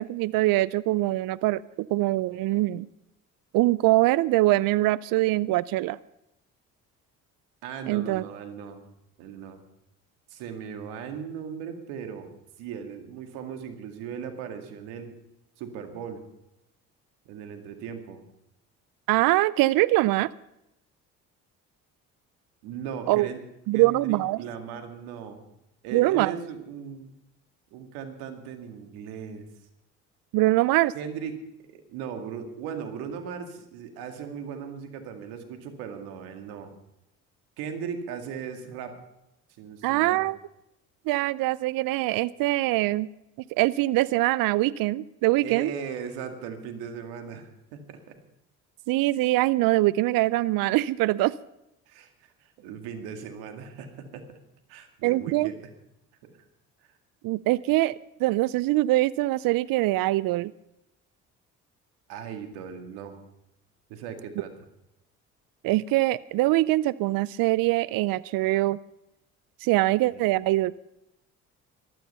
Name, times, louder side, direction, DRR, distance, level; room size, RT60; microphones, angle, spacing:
voice 1, 0.0-2.9 3.5-6.0 7.9-8.2 19.1-20.3 23.1-23.3 23.7-24.4 25.9-26.3 30.3-30.9 39.8-40.4 41.1-43.1 43.5-45.7 48.9-51.3 55.0-55.5 57.2-60.5 65.6-68.8 69.6-70.7, right 18 dB, 65° right, 20 dB, 0.5 m, -23 dB
voice 2, 7.6-8.8 9.2-9.6 10.3-12.3 12.6-15.1 15.6-16.2 17.3-18.2 22.6-23.4 23.7-25.4 25.8-27.1 27.7-29.5 30.9-31.4 31.6-36.7 37.6-39.0 39.6-40.2 45.4-48.2 51.9-54.4 54.7-55.6 56.2-56.4 56.8-57.0 62.1-63.2 63.9-64.5 70.1-70.3, right 7 dB, 80° right, 6 dB, 2.1 m, -38 dB
15.0 x 12.5 x 5.5 m, 0.87 s
hypercardioid pair, 55°, 37 cm